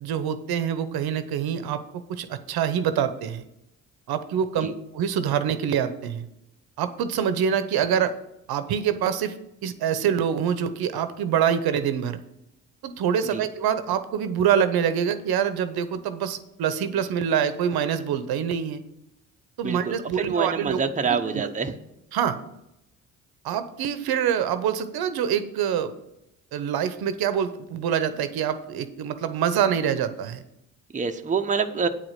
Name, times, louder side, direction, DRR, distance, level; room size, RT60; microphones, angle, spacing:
voice 1, 0.0-1.8 2.1-3.4 4.1-6.3 6.8-8.1 8.5-9.4 9.6-12.2 12.8-18.8 19.6-20.8 21.1-21.5 22.1-22.4 23.4-25.9 26.5-30.4, right 8 dB, 60° right, 11 dB, 0.9 m, -25 dB
voice 2, 19.6-21.8 30.9-31.9, right 5 dB, 20° right, 6 dB, 0.8 m, -26 dB
8.8 x 5.0 x 7.4 m, 0.85 s
hypercardioid pair, 50°, 41 cm